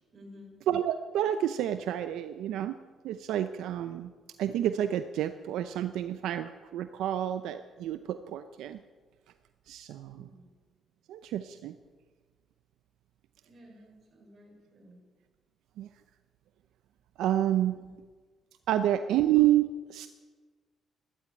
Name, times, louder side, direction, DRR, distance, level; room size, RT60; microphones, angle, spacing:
voice 1, 0.0-0.6 10.1-10.5 13.5-15.0 17.7-17.9, left 1 dB, 45° right, 1 dB, 5.8 m, -53 dB
voice 2, 0.7-2.8 3.0-4.1 4.4-8.8 9.7-10.3 11.1-11.7 15.8-15.9 17.2-17.8 18.7-20.1, right 12 dB, 85° right, 10 dB, 0.6 m, -29 dB
14.0 x 11.5 x 8.9 m, 1.4 s
cardioid pair, 90°, 0 cm